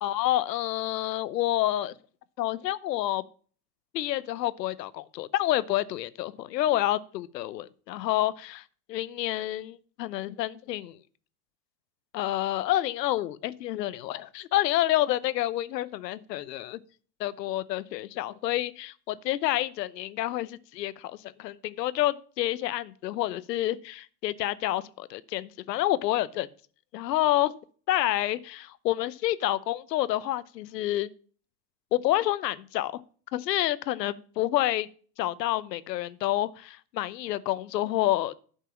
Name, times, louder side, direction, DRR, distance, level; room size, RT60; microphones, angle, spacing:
voice 1, 0.0-1.9 2.4-3.2 3.9-8.6 8.9-11.0 12.1-16.8 17.2-26.5 26.9-27.5 27.9-31.1 31.9-33.0 33.3-34.9 35.2-38.3, left 14 dB, 80° left, 17 dB, 0.9 m, -28 dB
11.0 x 5.5 x 7.2 m, 0.43 s
hypercardioid pair, 85°, 48 cm